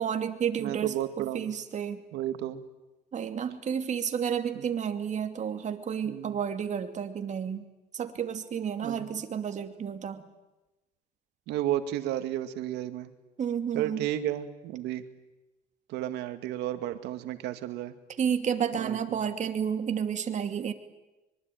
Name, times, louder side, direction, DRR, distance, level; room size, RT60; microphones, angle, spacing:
voice 1, 0.0-2.0 3.1-7.6 7.9-10.2 13.4-14.1 18.2-20.7, right 8 dB, 45° right, 7 dB, 2.7 m, -31 dB
voice 2, 0.6-1.5 2.1-2.6 4.5-4.6 6.1-6.4 8.8-9.1 11.5-13.1 13.7-15.0 15.9-18.0 18.7-19.2, right 12 dB, 90° right, 9 dB, 2.1 m, -32 dB
24.5 x 24.0 x 9.4 m, 1.0 s
cardioid pair, 110°, 17 cm